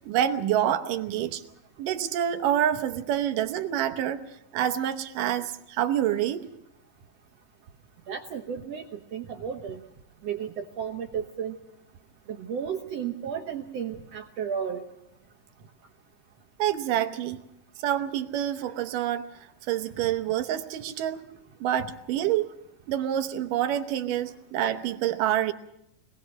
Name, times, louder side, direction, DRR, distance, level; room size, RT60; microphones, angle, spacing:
voice 1, 0.0-1.4 1.8-4.2 4.5-6.5 16.6-17.4 17.8-19.3 19.7-21.2 21.6-22.5 22.9-25.5, right 11 dB, 80° right, 9 dB, 2.6 m, -27 dB
voice 2, 8.1-9.8 10.2-11.6 12.3-14.8, right 7 dB, 60° right, 4 dB, 1.9 m, -33 dB
25.0 x 19.5 x 6.4 m, 0.83 s
omnidirectional pair, 3.8 m